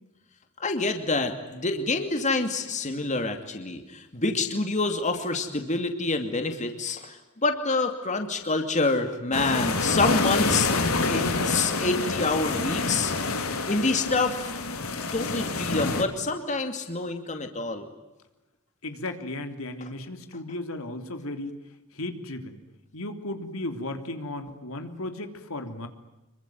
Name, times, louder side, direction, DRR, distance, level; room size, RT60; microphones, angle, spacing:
voice 1, 0.6-10.7 11.1-13.1 13.7-14.5 15.1-17.9, left 3 dB, 35° left, 6 dB, 2.5 m, -27 dB
sound 1, 9.3-16.0, left 3 dB, 90° left, 3.7 m, -27 dB
voice 2, 18.8-21.6 21.9-22.6 22.9-25.9, left 2 dB, 70° left, 7 dB, 3.3 m, -35 dB
27.0 x 24.0 x 9.3 m, 1.0 s
head